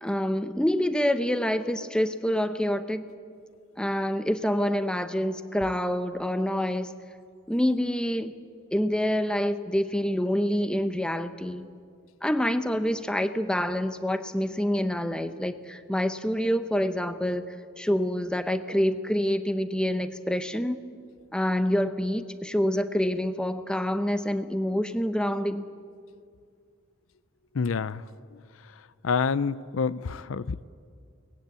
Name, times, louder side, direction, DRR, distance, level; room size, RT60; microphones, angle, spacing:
voice 1, 0.0-3.1 3.8-6.9 7.5-8.4 8.7-11.7 12.2-20.8 21.3-25.7, equal, 5° left, 10 dB, 0.8 m, -27 dB
voice 2, 27.5-28.0 29.0-30.6, left 5 dB, 65° left, 17 dB, 0.5 m, -27 dB
23.0 x 19.5 x 8.3 m, 2.2 s
head